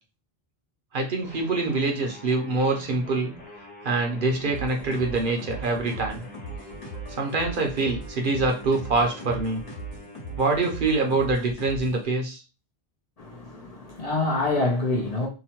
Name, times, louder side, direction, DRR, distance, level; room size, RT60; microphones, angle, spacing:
voice 1, 0.9-3.3 3.8-6.2 7.2-9.6 10.4-12.4, right 3 dB, 60° right, 0.7 m, -25 dB
sound 1, 1.2-11.5, left 2 dB, 10° left, 0.7 m, -46 dB
sound 2, 4.4-12.0, right 2 dB, 65° left, 1.2 m, -39 dB
voice 2, 13.2-15.3, left 2 dB, 45° left, 0.6 m, -26 dB
2.8 x 2.1 x 2.9 m
omnidirectional pair, 1.0 m